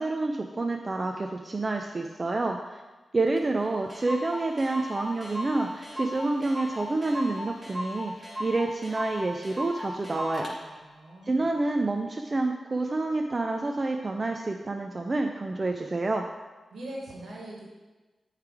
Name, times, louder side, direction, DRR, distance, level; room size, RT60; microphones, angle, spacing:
voice 1, 0.0-2.8 3.1-10.5 11.2-16.2, right 2 dB, 45° right, 3 dB, 0.5 m, -28 dB
Clock, 3.4-3.5 3.6-3.7 3.9-10.6, left 1 dB, 5° right, 2.3 m, -37 dB
voice 2, 10.6-11.6 16.7-17.6, right 1 dB, 80° right, -3 dB, 1.7 m, -42 dB
8.2 x 3.3 x 4.8 m, 1.2 s
cardioid pair, 45°, 0 cm